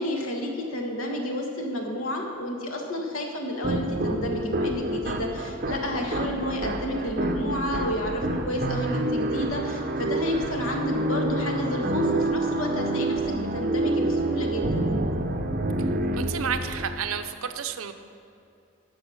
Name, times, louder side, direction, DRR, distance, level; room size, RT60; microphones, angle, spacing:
voice 1, 0.0-14.9, equal, 75° left, 2 dB, 1.5 m, -31 dB
sound 1, 3.6-17.3, right 1 dB, 40° right, 0.6 m, -28 dB
voice 2, 16.2-17.9, right 7 dB, 80° right, 9 dB, 0.6 m, -31 dB
11.5 x 6.8 x 6.3 m, 2.6 s
head